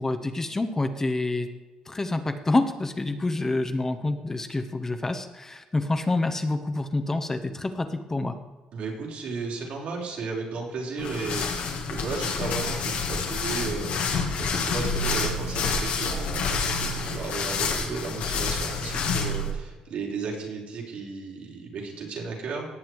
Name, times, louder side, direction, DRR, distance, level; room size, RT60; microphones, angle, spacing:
voice 1, 0.0-1.5 1.9-8.4, left 2 dB, 20° left, 7 dB, 1.3 m, -27 dB
voice 2, 8.7-22.7, right 4 dB, 70° right, -2 dB, 4.6 m, -34 dB
sound 1, 11.0-19.5, left 4 dB, 80° left, 2.7 m, -28 dB
18.0 x 7.4 x 4.8 m, 1.3 s
cardioid pair, 85°, 2 cm